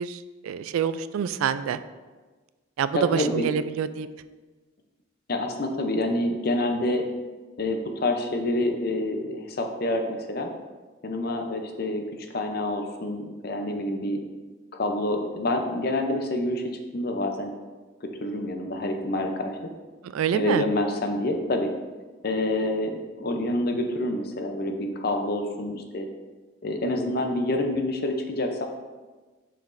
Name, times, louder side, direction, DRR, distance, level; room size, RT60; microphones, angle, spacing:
voice 1, 0.0-1.8 2.8-4.1 20.0-20.7, right 7 dB, 85° right, 13 dB, 0.3 m, -27 dB
voice 2, 2.9-3.4 5.3-7.0 7.6-10.5 11.0-12.0 12.3-14.2 14.7-16.6 16.9-17.5 18.0-19.5 20.3-21.7 22.2-26.1 26.6-28.7, left 1 dB, 45° left, 4 dB, 0.6 m, -27 dB
7.1 x 5.7 x 2.6 m, 1.3 s
head